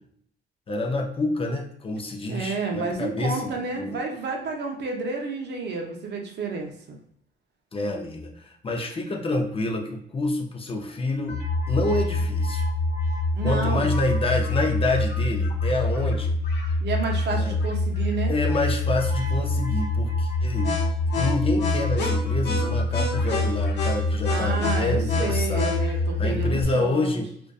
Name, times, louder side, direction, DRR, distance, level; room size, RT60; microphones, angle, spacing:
voice 1, 0.7-4.0 7.7-12.6 13.4-16.4 17.3-17.6 18.3-20.7 21.1-25.8 26.2-27.3, left 2 dB, 30° left, 1 dB, 0.5 m, -28 dB
voice 2, 2.3-7.0 13.3-13.9 16.8-18.3 24.3-27.2, right 4 dB, 60° right, 2 dB, 0.6 m, -30 dB
sound 1, 11.3-26.6, left 2 dB, 60° left, 0.7 m, -25 dB
2.5 x 2.2 x 2.3 m, 0.68 s
cardioid pair, 90°, 20 cm